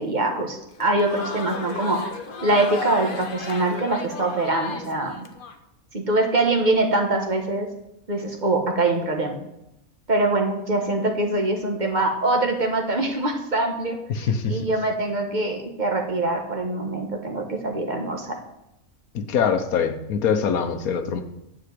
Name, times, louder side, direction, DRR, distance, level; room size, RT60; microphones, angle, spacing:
voice 1, 0.0-2.1 2.4-5.1 5.9-7.7 8.1-9.4 10.1-14.0 14.5-18.3, right 2 dB, 35° right, 3 dB, 1.4 m, -23 dB
Crowd, 0.7-5.5, left 4 dB, 45° left, 0.9 m, -35 dB
voice 2, 14.1-14.6 19.1-21.2, left 6 dB, 90° left, 8 dB, 1.4 m, -23 dB
9.7 x 4.9 x 7.8 m, 0.85 s
omnidirectional pair, 1.5 m